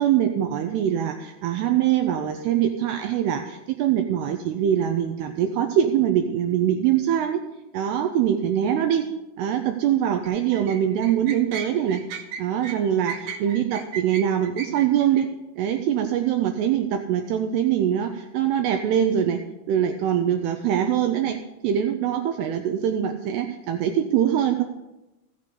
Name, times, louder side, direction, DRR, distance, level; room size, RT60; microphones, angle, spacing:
voice 1, 0.0-7.4 7.7-9.0 9.4-12.0 12.4-15.3 15.6-19.4 19.7-21.4 21.6-24.6, right 10 dB, 90° right, 5 dB, 2.4 m, -23 dB
sound 1, 10.2-15.3, right 6 dB, 70° right, 2.5 m, -36 dB
16.0 x 6.7 x 5.2 m, 0.98 s
omnidirectional pair, 5.4 m